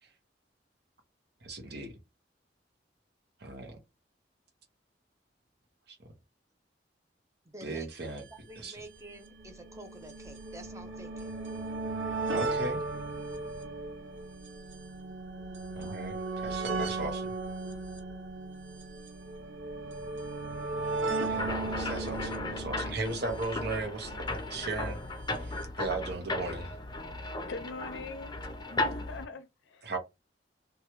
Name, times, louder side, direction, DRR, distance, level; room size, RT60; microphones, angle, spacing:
voice 1, 1.4-2.0 3.4-3.8 5.9-6.0 7.6-8.2 8.6-8.8 12.3-12.8 15.7-17.3 21.2-25.0 25.4-26.8 29.8-30.0, right 3 dB, 65° right, 0.9 m, -37 dB
voice 2, 7.5-8.0 8.3-11.3, right 1 dB, 15° right, 0.7 m, -49 dB
sound 1, 7.9-8.0 8.2-8.3 9.1-24.4 25.4-25.5 25.6-25.7, right 3 dB, 90° right, 0.8 m, -36 dB
sound 2, 21.3-29.2, left 2 dB, 25° left, 0.5 m, -36 dB
voice 3, 27.5-28.4 28.7-30.0, left 4 dB, 80° left, 0.5 m, -43 dB
3.0 x 2.3 x 3.0 m
head